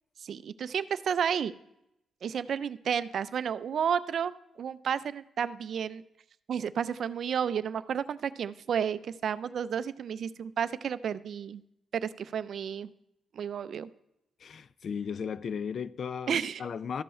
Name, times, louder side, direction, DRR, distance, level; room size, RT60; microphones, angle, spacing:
voice 1, 0.2-1.5 2.2-4.3 4.6-6.0 6.5-11.6 11.9-12.9 13.3-13.9 16.3-16.6, right 8 dB, 65° right, 0.4 m, -31 dB
voice 2, 14.4-17.0, left 6 dB, 60° left, 0.3 m, -36 dB
13.5 x 5.4 x 4.3 m
supercardioid pair, 60°, 0 cm